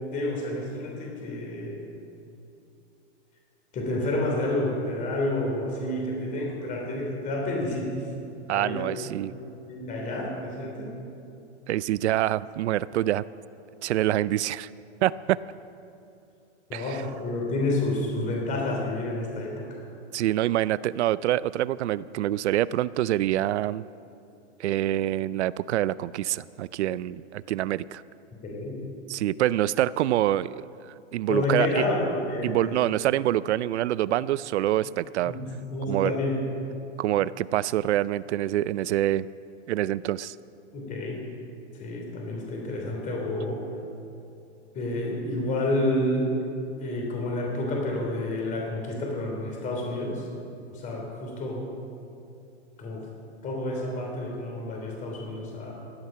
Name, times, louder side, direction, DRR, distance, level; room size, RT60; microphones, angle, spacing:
voice 1, 0.1-1.9 3.7-7.9 8.5-8.9 9.3-10.9 16.7-19.7 28.4-28.8 31.3-32.8 35.2-36.4 40.7-41.2 41.8-43.6 44.7-46.3 46.8-50.2 50.7-51.7 52.8-53.0 53.4-55.7, left 1 dB, 20° left, 0 dB, 3.2 m, -29 dB
voice 2, 8.5-9.3 11.7-13.2 13.8-14.7 15.0-15.4 16.7-17.0 20.1-23.8 24.6-28.0 29.1-30.7 31.1-31.9 32.4-35.3 35.9-36.1 37.0-39.3 39.7-40.4, right 13 dB, 75° right, 19 dB, 0.5 m, -26 dB
17.0 x 11.5 x 5.7 m, 2.7 s
supercardioid pair, 155°, 35 cm